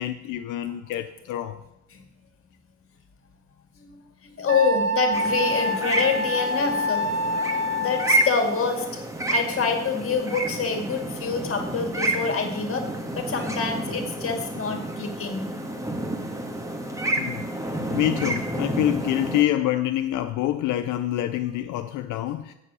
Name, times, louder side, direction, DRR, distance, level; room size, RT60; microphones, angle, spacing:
voice 1, 0.0-1.6 17.2-22.5, left 13 dB, 85° left, 0.5 m, -26 dB
voice 2, 4.2-7.0 7.8-8.9 9.3-12.8 13.2-15.4, left 5 dB, 45° left, 2.1 m, -26 dB
Wind instrument woodwind instrument, 4.5-8.3, equal, 35° right, 1.1 m, -26 dB
sound 1, 5.1-19.4, right 1 dB, 10° right, 1.3 m, -30 dB
7.4 x 7.0 x 6.2 m
cardioid pair, 90°, 30 cm